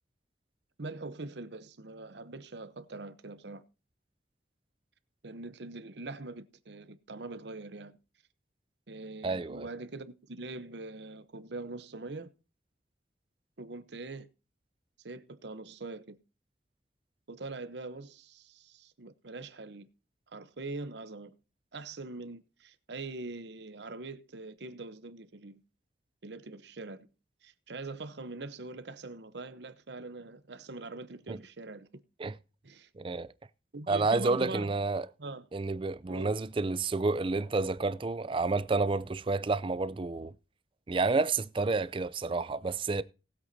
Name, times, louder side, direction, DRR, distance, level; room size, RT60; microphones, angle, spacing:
voice 1, 0.8-3.6 5.2-8.0 8.9-12.3 13.6-14.3 15.0-16.2 17.3-19.9 20.3-21.3 21.7-25.6 26.2-27.1 27.4-31.9 32.6-32.9 33.7-34.8 35.2-35.5 36.1-36.4, right 3 dB, 70° right, 0.9 m, -43 dB
voice 2, 9.2-9.7 31.3-31.4 32.2-32.3 33.0-33.3 33.9-35.1 35.5-40.3 40.9-43.0, right 3 dB, 30° right, 0.4 m, -30 dB
19.0 x 8.1 x 2.7 m
head